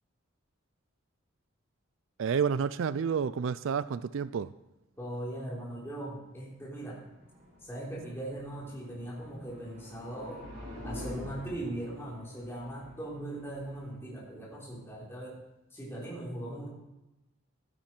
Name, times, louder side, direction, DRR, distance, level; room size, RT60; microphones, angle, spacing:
voice 1, 2.2-4.5, right 6 dB, 65° right, 16 dB, 0.4 m, -30 dB
voice 2, 5.0-7.0 7.6-10.5 10.8-15.4 15.7-16.7, right 1 dB, 10° left, -5 dB, 3.5 m, -39 dB
sound 1, 6.3-15.3, left 1 dB, 45° right, 5.1 m, -47 dB
12.5 x 9.6 x 4.5 m, 0.96 s
head